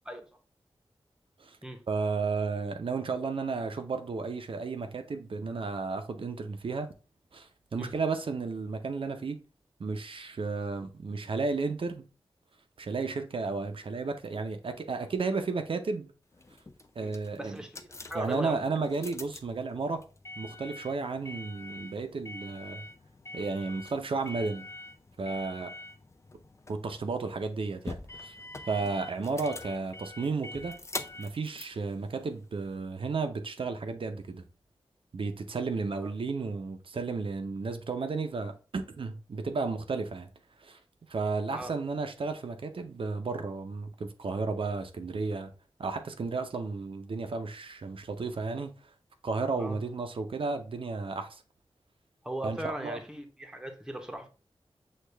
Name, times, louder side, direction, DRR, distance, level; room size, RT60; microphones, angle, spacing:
voice 1, 1.9-6.9 7.3-9.4 9.8-12.1 12.8-16.1 17.0-17.6 18.1-20.0 20.4-22.8 23.3-24.7 25.2-25.7 26.7-28.3 28.6-30.7 31.2-34.4 35.1-40.3 40.6-40.8 41.1-45.5 45.8-48.7 49.2-51.4 52.4-53.0, right 4 dB, 65° right, 0.6 m, -33 dB
sound 1, 16.3-32.7, left 2 dB, 30° left, 0.4 m, -45 dB
voice 2, 17.0-18.6 36.0-36.1 41.5-41.7 49.6-49.8 52.2-54.3, right 1 dB, 5° right, 0.8 m, -39 dB
6.4 x 2.4 x 3.3 m
wide cardioid pair, 90°, 10 cm